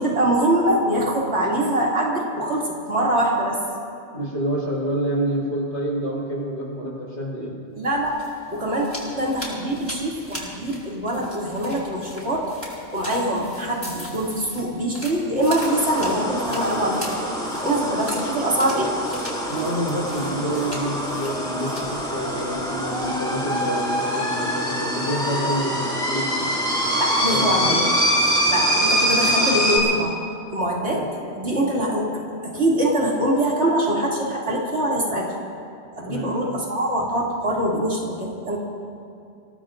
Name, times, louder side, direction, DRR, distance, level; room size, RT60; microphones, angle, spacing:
voice 1, 0.0-3.6 7.8-8.1 8.5-8.9 9.1-12.5 12.9-19.0 27.0-27.9 28.5-30.2 30.5-31.1 31.4-35.3 36.0-38.6, right 1 dB, 90° right, -4 dB, 3.2 m, -23 dB
voice 2, 4.1-7.6 19.5-26.5 27.3-27.8 30.9-31.0 36.1-36.3, right 1 dB, 85° left, -4 dB, 4.7 m, -28 dB
sound 1, 7.9-23.1, left 1 dB, 35° left, 4.8 m, -40 dB
sound 2, 15.4-29.8, equal, 5° left, 3.7 m, -24 dB
27.0 x 18.0 x 2.6 m, 2.5 s
omnidirectional pair, 1.1 m